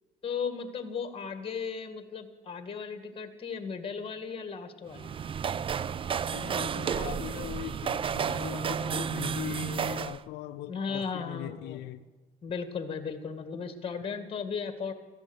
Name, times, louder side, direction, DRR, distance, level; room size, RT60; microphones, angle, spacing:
voice 1, 0.2-5.2 10.7-11.8 12.4-14.9, left 6 dB, 35° left, 2.0 m, -36 dB
sound 1, 4.9-10.2, right 7 dB, 30° right, 0.4 m, -32 dB
voice 2, 6.3-12.0, left 14 dB, 90° left, 0.6 m, -40 dB
15.0 x 11.5 x 8.1 m
cardioid pair, 110°, 17 cm